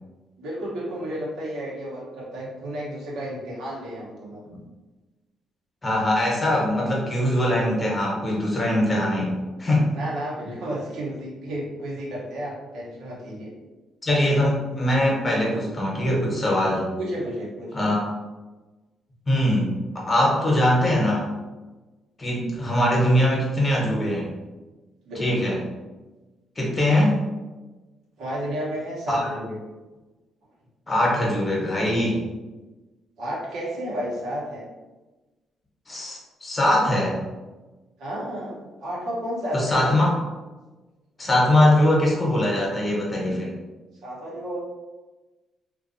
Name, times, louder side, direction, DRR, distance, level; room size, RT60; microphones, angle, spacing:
voice 1, 0.4-4.4 9.2-9.3 9.9-13.5 17.0-17.9 25.1-25.4 28.2-29.6 33.2-34.7 38.0-39.9 44.0-44.6, equal, 85° right, -4 dB, 0.8 m, -32 dB
voice 2, 5.8-9.9 14.0-16.9 17.7-18.1 19.3-19.8 20.1-21.3 22.2-24.3 25.2-25.6 26.6-27.2 29.1-29.2 30.9-32.3 35.9-37.2 39.5-40.1 41.2-43.5, left 1 dB, 25° left, -4 dB, 0.9 m, -22 dB
2.6 x 2.2 x 2.6 m, 1.2 s
cardioid pair, 90°, 0 cm